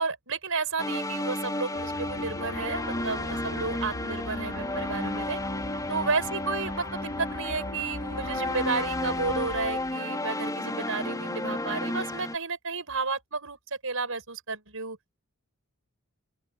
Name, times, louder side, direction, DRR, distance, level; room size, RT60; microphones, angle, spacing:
voice 1, 0.0-5.4 5.9-13.6 13.8-15.0, right 4 dB, 65° right, 7.4 m, -32 dB
sound 1, 0.8-12.4, left 1 dB, 15° left, 5.1 m, -32 dB
sound 2, 1.7-9.9, left 2 dB, 90° left, 2.7 m, -41 dB
open air
head